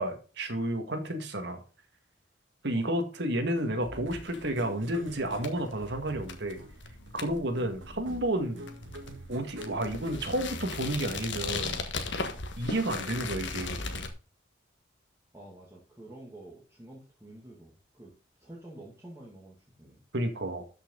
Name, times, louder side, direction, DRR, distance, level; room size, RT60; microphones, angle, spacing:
voice 1, 0.0-1.6 2.6-6.6 7.1-8.6 9.3-11.8 12.6-13.8 20.1-20.6, right 1 dB, 60° right, 6 dB, 1.9 m, -31 dB
sound 1, 3.6-11.2, right 1 dB, 80° right, 1.8 m, -46 dB
sound 2, 4.1-14.1, left 4 dB, 65° left, 1.5 m, -38 dB
voice 2, 15.3-18.1 18.4-20.0, right 1 dB, 15° right, -4 dB, 2.3 m, -49 dB
12.5 x 5.9 x 3.9 m, 0.35 s
head